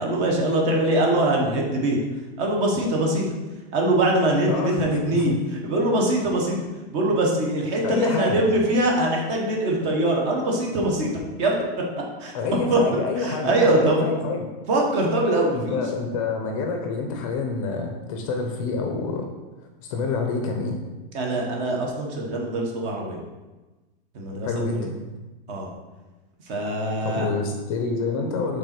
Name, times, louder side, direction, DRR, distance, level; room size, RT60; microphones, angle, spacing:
voice 1, 0.0-2.0 2.4-3.2 3.7-5.3 5.6-6.6 6.9-11.1 11.4-11.6 12.2-12.3 12.7-14.0 14.7-15.9 21.1-23.2 24.1-24.9 25.5-25.7 26.5-27.3, right 1 dB, 30° right, -1 dB, 1.2 m, -23 dB
voice 2, 4.5-5.4 7.8-8.5 12.3-14.5 15.5-19.3 19.8-20.8 24.4-24.9 27.0-28.6, left 4 dB, 35° left, 3 dB, 0.7 m, -27 dB
5.4 x 4.1 x 6.0 m, 1.2 s
supercardioid pair, 175°, 30 cm